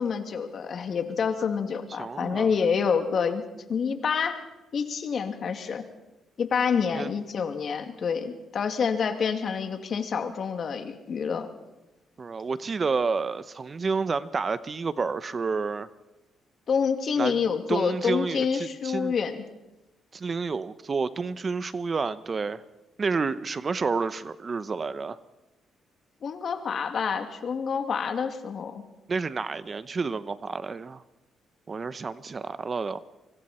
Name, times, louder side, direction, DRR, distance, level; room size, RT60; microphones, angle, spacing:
voice 1, 0.0-3.4 3.7-4.4 4.7-5.8 6.4-11.5 16.7-19.4 26.2-28.8, left 6 dB, 55° left, 6 dB, 2.5 m, -27 dB
voice 2, 2.0-2.5 6.9-7.1 12.2-15.9 17.2-17.4 17.7-19.1 20.1-22.6 23.0-25.2 29.1-31.0 31.7-33.0, right 4 dB, 35° right, 14 dB, 0.8 m, -30 dB
25.5 x 24.5 x 4.4 m, 0.99 s
cardioid pair, 90°, 0 cm